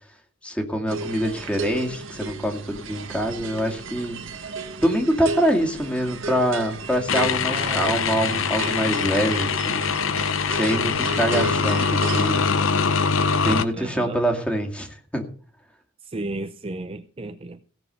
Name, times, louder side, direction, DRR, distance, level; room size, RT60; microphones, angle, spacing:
voice 1, 0.4-4.2 4.8-9.9 10.5-12.4 13.4-15.2, equal, 5° left, 2.2 m, -25 dB
sound 1, 0.9-12.4, right 3 dB, 70° right, 1.6 m, -34 dB
sound 2, 7.1-13.6, left 5 dB, 70° left, 0.7 m, -23 dB
voice 2, 7.5-8.1 13.7-14.2 16.1-17.6, right 2 dB, 25° right, 0.6 m, -33 dB
16.5 x 7.1 x 6.8 m
head